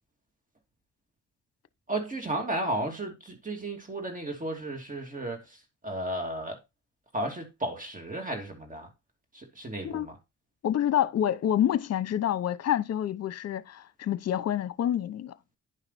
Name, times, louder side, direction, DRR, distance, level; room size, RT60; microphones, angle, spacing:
voice 1, 1.9-6.6 7.1-8.9 9.3-10.2, right 1 dB, 25° right, 2.8 m, -34 dB
voice 2, 10.6-15.3, left 10 dB, 55° left, 0.9 m, -27 dB
10.5 x 5.8 x 4.2 m
cardioid pair, 90°, 30 cm